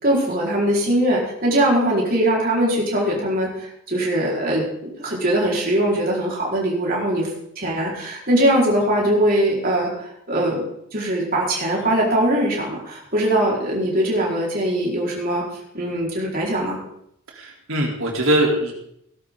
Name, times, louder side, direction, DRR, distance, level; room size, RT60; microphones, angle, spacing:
voice 1, 0.0-4.6 5.0-7.3 7.6-10.6 10.9-15.4 15.7-16.8, right 1 dB, 40° right, -4 dB, 4.9 m, -21 dB
voice 2, 17.3-18.7, right 1 dB, 70° right, -1 dB, 3.9 m, -21 dB
18.0 x 12.0 x 4.0 m, 0.74 s
head